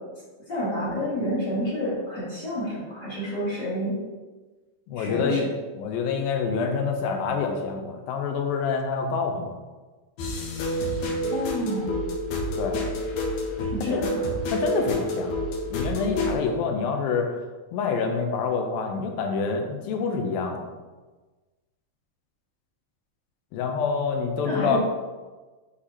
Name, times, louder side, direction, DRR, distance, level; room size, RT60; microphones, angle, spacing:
voice 1, 0.5-3.9 5.0-5.4 11.3-12.0 13.7-14.2 24.4-24.8, equal, 40° left, -9 dB, 1.9 m, -29 dB
voice 2, 4.9-5.5 5.8-9.5 12.6-12.8 13.8-14.0 14.5-15.4 15.7-17.3 17.7-20.7 23.5-24.8, left 5 dB, 85° left, 3 dB, 2.5 m, -27 dB
sound 1, 10.2-16.4, left 1 dB, 70° left, 2.1 m, -28 dB
8.2 x 4.9 x 2.8 m, 1.3 s
omnidirectional pair, 4.2 m